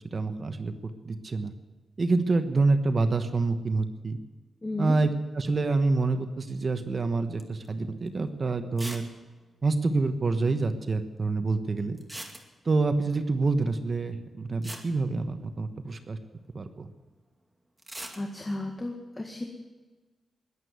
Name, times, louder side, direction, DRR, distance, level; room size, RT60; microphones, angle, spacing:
voice 1, 0.1-1.5 2.0-4.2 4.8-9.1 9.6-12.0 12.6-16.2 16.5-16.9, right 3 dB, 40° right, 8 dB, 1.2 m, -27 dB
voice 2, 4.6-5.0 18.2-19.4, left 2 dB, 20° left, 2 dB, 1.8 m, -33 dB
sound 1, 7.4-7.7 8.1-8.2 8.8-9.1 9.4-9.5 9.6-9.7 12.0-12.8 14.2-14.3 14.6-15.8 17.8-18.2, right 1 dB, 15° right, 2.3 m, -41 dB
20.5 x 8.4 x 8.2 m, 1.3 s
cardioid pair, 100°, 0 cm